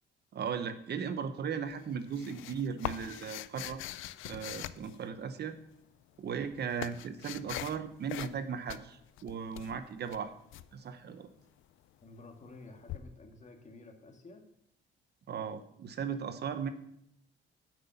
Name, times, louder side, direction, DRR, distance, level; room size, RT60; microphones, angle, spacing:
voice 1, 0.3-3.8 4.2-5.6 6.2-10.3 10.7-11.3 15.3-16.7, right 6 dB, 55° right, 10 dB, 0.9 m, -37 dB
sound 1, 1.7-5.5 6.2-7.8 8.1-8.4 8.7-10.7 12.9-13.0, left 14 dB, 80° left, 0.5 m, -42 dB
voice 2, 12.0-14.4, left 3 dB, 35° left, 4 dB, 1.9 m, -52 dB
9.2 x 5.9 x 6.9 m, 0.74 s
cardioid pair, 90°, 20 cm